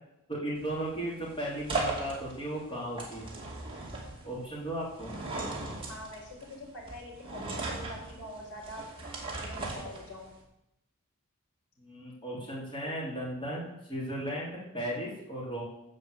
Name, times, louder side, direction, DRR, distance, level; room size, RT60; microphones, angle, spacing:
voice 1, 0.3-3.4 4.2-5.1 11.8-15.6, right 1 dB, 20° left, -6 dB, 3.3 m, -36 dB
sound 1, 0.5-10.4, right 2 dB, 25° right, 2.5 m, -38 dB
voice 2, 5.9-8.9 9.3-10.3, left 1 dB, 80° left, -3 dB, 4.6 m, -45 dB
14.5 x 5.1 x 7.9 m, 0.86 s
head